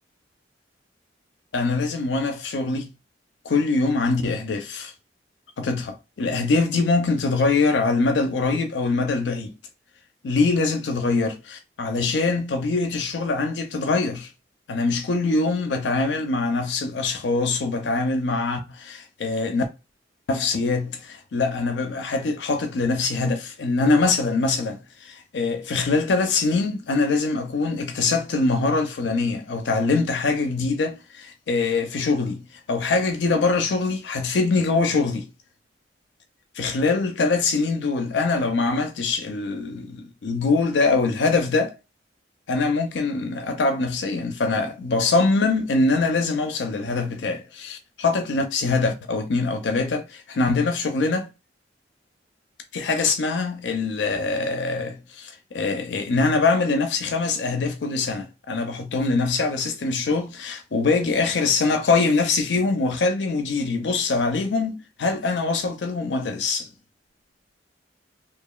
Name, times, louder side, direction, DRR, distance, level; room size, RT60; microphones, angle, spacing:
voice 1, 1.5-2.9 3.4-4.9 5.6-9.5 10.2-14.3 14.7-19.6 20.3-35.3 36.5-41.7 42.5-51.3 52.7-66.7, left 3 dB, 75° left, 0.5 m, -23 dB
2.9 x 2.4 x 2.3 m
head